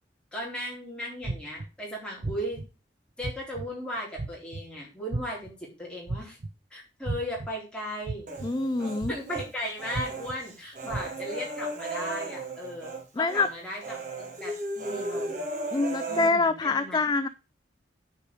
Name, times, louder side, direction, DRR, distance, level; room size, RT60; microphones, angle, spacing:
voice 1, 0.3-2.6 3.2-6.4 6.7-8.3 8.8-15.4 16.1-17.1, equal, 5° left, 4.2 m, -37 dB
sound 1, 1.2-1.7 2.2-2.6 3.2-3.6 4.2-4.6 5.1-5.5 6.1-6.5 7.1-7.5 8.1-8.5 9.0-9.4 9.9-10.3 10.9-11.0, right 2 dB, 70° right, 0.8 m, -33 dB
Human voice, 8.3-9.5 9.8-13.0 13.3-13.5 13.8-16.3, right 2 dB, 45° right, 2.4 m, -35 dB
voice 2, 8.4-9.1 13.2-13.5 15.7-17.3, left 3 dB, 25° left, 0.4 m, -25 dB
10.0 x 5.0 x 4.9 m
head